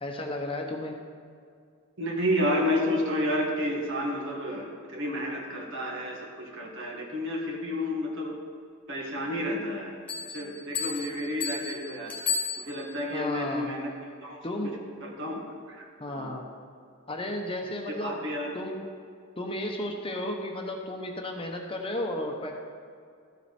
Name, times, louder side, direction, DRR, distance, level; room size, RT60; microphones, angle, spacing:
voice 1, 0.0-0.9 13.1-13.7 14.4-14.7 16.0-16.5 17.1-18.2 18.5-18.8 19.4-22.5, left 1 dB, 25° left, 2 dB, 0.9 m, -33 dB
voice 2, 2.0-4.6 4.9-8.4 8.9-9.9 10.2-12.1 12.6-13.9 14.2-14.4 15.0-16.3 17.9-18.6, left 1 dB, 60° right, -1 dB, 1.9 m, -30 dB
sound 1, 10.1-13.1, left 5 dB, 10° left, 1.7 m, -34 dB
13.5 x 7.7 x 4.3 m, 2.3 s
head